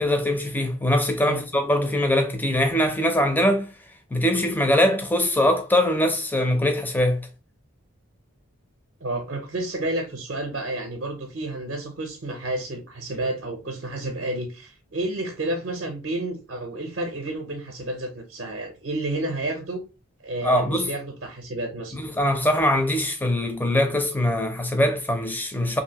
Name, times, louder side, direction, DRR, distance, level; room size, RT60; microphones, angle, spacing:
voice 1, 0.0-3.7 4.1-7.3 20.4-20.9 21.9-25.8, left 1 dB, 10° left, 0.4 m, -22 dB
voice 2, 9.0-19.8 20.2-22.0, right 2 dB, 50° right, 0.6 m, -30 dB
2.7 x 2.6 x 2.8 m
head